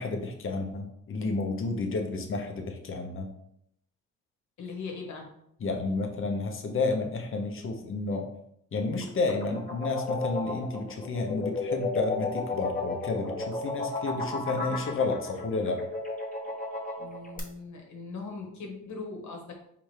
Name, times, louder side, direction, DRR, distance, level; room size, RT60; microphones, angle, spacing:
voice 1, 0.0-3.3 5.6-8.2 8.7-15.8, left 3 dB, 40° left, 4 dB, 0.9 m, -31 dB
voice 2, 4.6-5.3 17.0-19.5, left 4 dB, 65° left, 2 dB, 1.2 m, -40 dB
sound 1, 8.9-17.4, left 3 dB, 25° left, 1.0 m, -33 dB
4.7 x 3.4 x 3.2 m, 0.74 s
cardioid pair, 115°, 31 cm